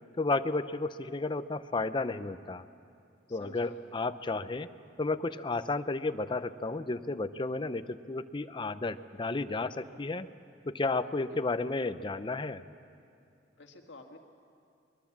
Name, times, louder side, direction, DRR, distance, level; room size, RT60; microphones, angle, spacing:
voice 1, 0.2-2.6 3.3-4.7 5.0-10.3 10.7-12.6, left 3 dB, 25° left, 11 dB, 0.6 m, -32 dB
voice 2, 3.3-3.9 11.3-11.4 13.6-14.2, left 2 dB, 70° left, 2 dB, 2.2 m, -51 dB
24.0 x 20.5 x 7.4 m, 2.5 s
head